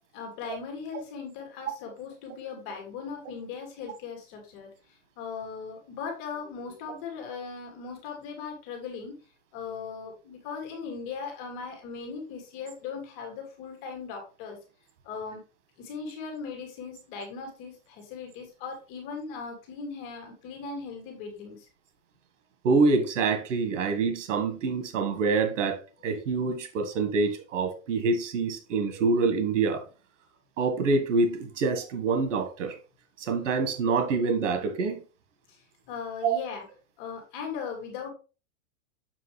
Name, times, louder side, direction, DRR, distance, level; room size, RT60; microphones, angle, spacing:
voice 1, 0.1-4.7 5.2-9.1 9.5-14.6 15.0-15.4 15.8-21.7 35.9-36.6 37.0-38.1, left 5 dB, 50° left, 2.7 m, -38 dB
voice 2, 22.6-29.8 30.6-32.8 33.2-35.0 36.2-36.3, right 4 dB, 85° right, 1.8 m, -26 dB
7.4 x 6.0 x 3.4 m
supercardioid pair, 150°, 36 cm